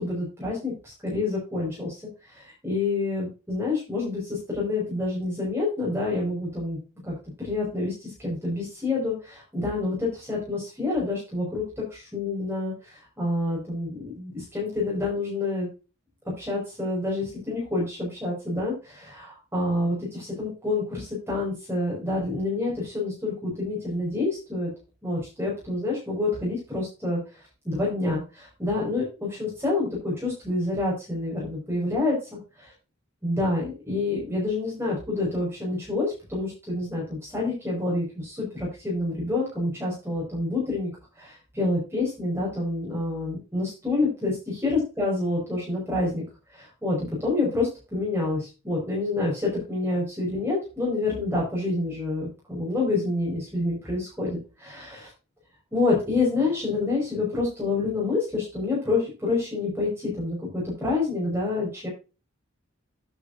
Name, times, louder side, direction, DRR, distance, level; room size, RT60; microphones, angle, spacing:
voice 1, 0.0-6.8 7.0-15.7 16.4-24.7 25.0-32.7 33.2-40.9 41.2-46.2 46.5-55.1 55.7-61.9, left 2 dB, 10° right, -4 dB, 5.6 m, -28 dB
11.5 x 9.1 x 2.7 m, 0.31 s
head